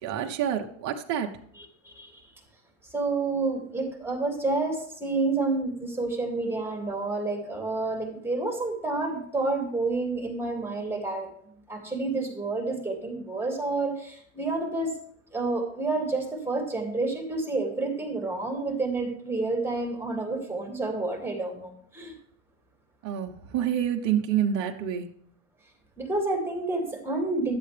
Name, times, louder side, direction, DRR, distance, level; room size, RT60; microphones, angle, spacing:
voice 1, 0.0-1.3 23.0-25.1, right 9 dB, 50° right, 3 dB, 1.2 m, -27 dB
voice 2, 1.8-2.2 2.9-11.3 11.7-14.9 15.3-22.1 26.0-27.6, right 3 dB, 5° right, 2 dB, 2.4 m, -29 dB
11.0 x 7.8 x 3.4 m, 0.63 s
hypercardioid pair, 100°, 39 cm